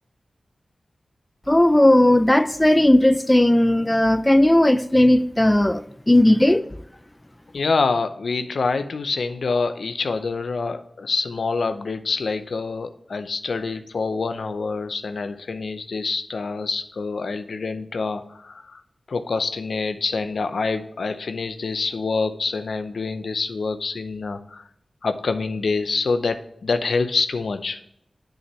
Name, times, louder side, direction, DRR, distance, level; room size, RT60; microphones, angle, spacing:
voice 1, 1.5-6.7, left 1 dB, 15° left, 0.4 m, -16 dB
voice 2, 7.5-18.8 19.1-24.7 25.0-27.8, left 4 dB, 85° left, 0.6 m, -26 dB
8.1 x 6.4 x 3.2 m
wide cardioid pair, 55°, 0 cm